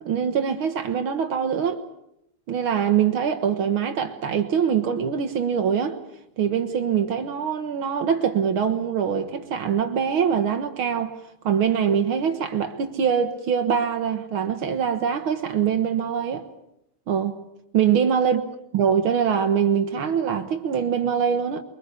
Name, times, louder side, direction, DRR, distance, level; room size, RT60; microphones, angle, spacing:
voice 1, 0.0-1.8 2.5-6.0 6.4-11.1 11.4-16.5 17.1-17.4 17.7-18.4 18.7-21.6, right 7 dB, 75° right, 2.1 m, -23 dB
24.0 x 23.0 x 8.3 m
omnidirectional pair, 2.3 m